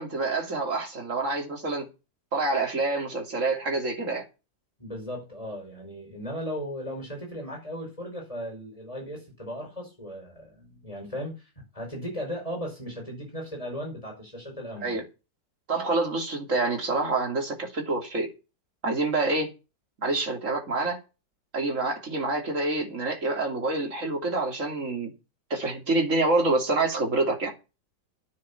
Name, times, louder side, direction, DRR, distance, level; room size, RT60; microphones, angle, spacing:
voice 1, 0.0-1.9 2.3-4.2 14.8-15.0 15.7-18.3 18.8-19.5 20.0-21.0 21.5-25.1 25.5-27.5, right 2 dB, 45° right, 3.2 m, -27 dB
voice 2, 4.8-15.0, equal, 20° left, 5.2 m, -37 dB
9.7 x 7.7 x 7.0 m
omnidirectional pair, 1.9 m